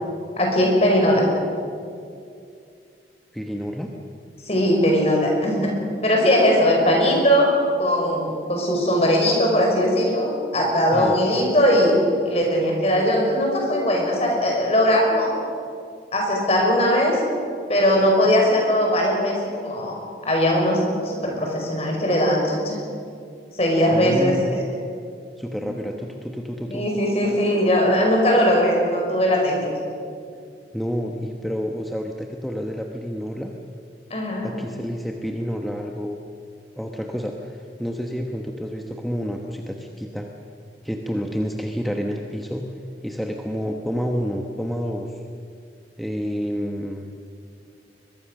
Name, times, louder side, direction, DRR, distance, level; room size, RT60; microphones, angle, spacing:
voice 1, 0.4-1.3 4.4-5.8 6.0-7.5 7.8-11.9 12.2-15.3 16.1-17.2 17.7-20.0 20.2-22.8 23.5-24.6 25.6-25.7 26.7-29.7 34.1-34.5, equal, 35° left, 0 dB, 5.6 m, -20 dB
voice 2, 3.3-3.9 10.9-11.2 23.9-24.5 25.4-26.8 30.7-33.5 34.4-36.2 36.8-40.3 40.8-42.6 43.0-45.1 46.0-47.1, equal, ahead, 1 dB, 1.0 m, -29 dB
22.0 x 22.0 x 6.5 m, 2.4 s
head